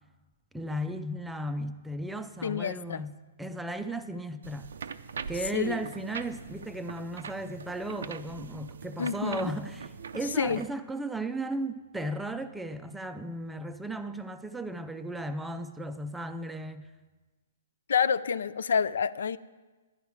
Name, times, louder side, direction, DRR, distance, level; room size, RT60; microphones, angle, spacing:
voice 1, 0.5-4.7 5.3-16.9, right 1 dB, 5° right, 0.4 m, -35 dB
voice 2, 2.4-3.0 5.5-5.8 9.0-9.5 10.4-10.6 17.9-19.4, left 7 dB, 80° left, 0.4 m, -28 dB
sound 1, 4.4-10.7, right 6 dB, 85° right, 0.5 m, -42 dB
11.0 x 10.5 x 4.8 m
hypercardioid pair, 165°, 0 cm